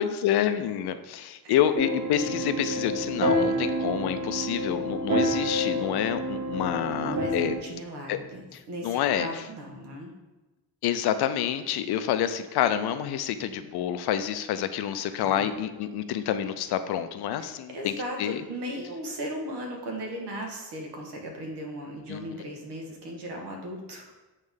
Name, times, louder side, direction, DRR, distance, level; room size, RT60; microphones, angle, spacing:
voice 1, 0.0-7.6 8.1-8.2 8.5-9.4 10.8-17.9 18.2-18.4 22.1-22.4, left 10 dB, 70° left, 11 dB, 0.5 m, -28 dB
sound 1, 1.7-7.6, equal, 45° right, 1.4 m, -28 dB
voice 2, 7.0-7.3 7.6-10.1 15.2-15.5 17.4-24.1, equal, 75° right, 1 dB, 1.4 m, -37 dB
8.0 x 3.3 x 3.6 m, 1.1 s
cardioid pair, 145°, 40 cm